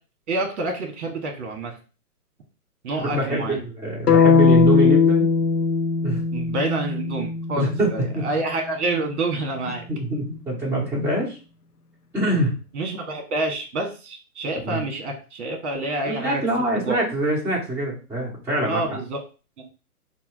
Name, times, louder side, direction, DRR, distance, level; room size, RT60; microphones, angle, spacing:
voice 1, 0.3-1.7 2.8-3.6 6.3-9.8 12.8-16.4 16.8-17.0 18.7-19.2 19.6-19.7, right 2 dB, 50° right, 3 dB, 1.6 m, -28 dB
voice 2, 3.1-5.3 6.0-6.2 7.6-8.2 9.9-11.4 12.1-12.5 14.6-14.8 16.0-19.0, right 1 dB, 5° right, -7 dB, 1.4 m, -24 dB
sound 1, 4.1-8.1, left 5 dB, 85° left, 0.7 m, -19 dB
4.3 x 2.3 x 4.7 m, 0.34 s
hypercardioid pair, 135°, 46 cm